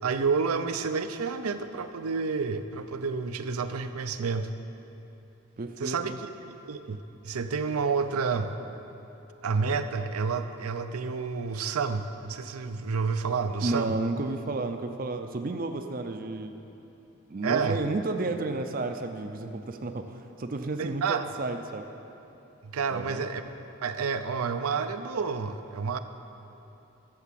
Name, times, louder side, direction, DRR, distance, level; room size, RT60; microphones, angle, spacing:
voice 1, 0.0-4.5 5.8-6.1 6.7-8.6 9.4-14.0 17.4-17.9 20.8-21.3 22.6-23.4 23.8-26.0, right 5 dB, 85° right, 8 dB, 0.6 m, -29 dB
voice 2, 5.6-6.2 13.6-16.5 17.3-21.9 22.9-23.2, right 2 dB, 40° right, 6 dB, 0.5 m, -32 dB
12.0 x 7.1 x 7.5 m, 2.9 s
head